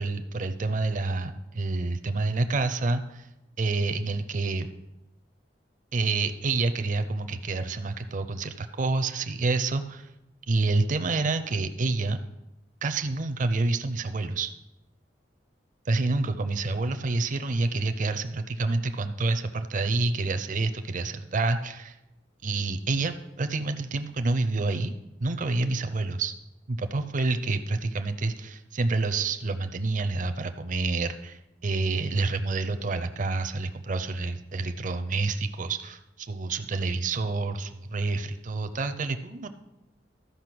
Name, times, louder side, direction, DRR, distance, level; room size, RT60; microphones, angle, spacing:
voice 1, 0.0-3.3 3.6-4.7 5.9-10.1 10.5-12.2 12.8-14.5 15.9-22.0 22.4-24.9 25.2-26.3 26.7-39.5, right 3 dB, 45° right, 9 dB, 0.5 m, -28 dB
12.5 x 5.3 x 6.0 m, 0.95 s
head